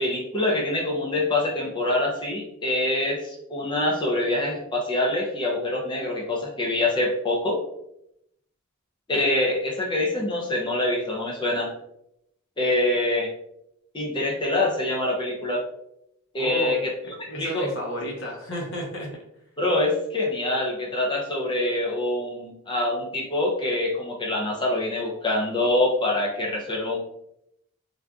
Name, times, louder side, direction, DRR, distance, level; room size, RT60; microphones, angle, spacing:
voice 1, 0.0-7.6 9.1-11.7 12.6-13.3 13.9-15.6 16.3-16.9 17.2-17.7 19.6-27.0, left 1 dB, 20° left, -2 dB, 0.5 m, -25 dB
voice 2, 16.4-16.8 17.3-19.1, equal, 65° left, -1 dB, 1.0 m, -31 dB
3.4 x 2.6 x 2.3 m, 0.79 s
head